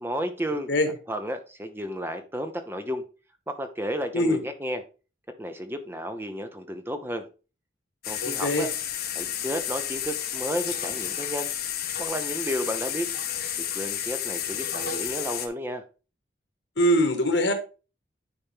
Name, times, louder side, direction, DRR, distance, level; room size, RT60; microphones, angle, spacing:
voice 1, 0.0-0.7 1.1-3.0 3.5-4.8 5.4-7.3 8.1-8.7 9.1-13.1 13.7-15.8, equal, 10° right, 0.7 m, -32 dB
sound 1, 8.0-15.5, left 10 dB, 50° left, 1.1 m, -31 dB
voice 2, 8.2-8.7 16.8-17.5, equal, 75° left, 1.7 m, -22 dB
10.0 x 4.3 x 3.6 m
head